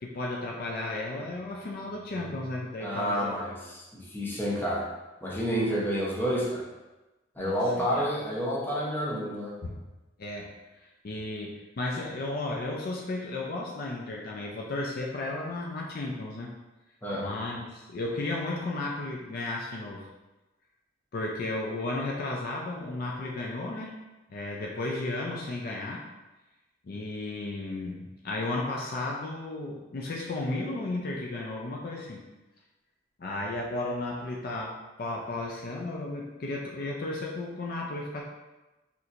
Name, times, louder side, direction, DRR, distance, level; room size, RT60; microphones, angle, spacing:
voice 1, 0.0-3.4 7.4-8.1 9.6-9.8 10.2-10.5 10.8-16.5 17.1-20.1 21.1-23.9 24.3-26.1 26.8-32.2 33.2-38.2, left 2 dB, 55° left, -1 dB, 0.4 m, -34 dB
voice 2, 2.8-4.9 5.2-6.6 7.4-9.6 17.0-17.3, equal, 10° left, -5 dB, 0.7 m, -29 dB
4.2 x 2.8 x 2.5 m, 1.1 s
head